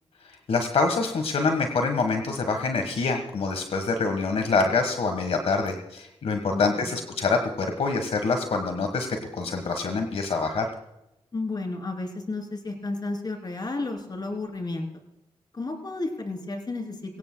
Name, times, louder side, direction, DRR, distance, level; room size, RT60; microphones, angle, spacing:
voice 1, 0.5-9.1 9.3-10.7, left 4 dB, 80° left, 5 dB, 1.5 m, -25 dB
voice 2, 6.5-6.9 11.3-14.9 15.5-17.2, left 2 dB, 40° left, 3 dB, 3.3 m, -32 dB
22.5 x 17.5 x 2.3 m, 0.87 s
wide cardioid pair, 85°, 10 cm